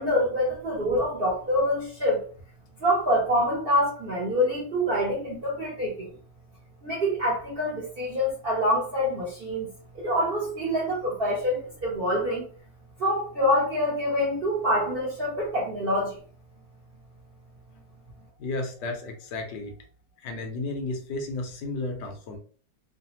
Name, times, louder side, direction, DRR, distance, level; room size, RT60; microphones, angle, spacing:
voice 1, 0.0-2.2 2.8-6.1 6.8-9.7 9.9-12.4 13.0-16.2, equal, 50° right, 0.6 m, -26 dB
voice 2, 18.4-19.7 20.2-22.4, left 2 dB, 80° left, 1.2 m, -33 dB
3.2 x 2.0 x 2.8 m
omnidirectional pair, 1.9 m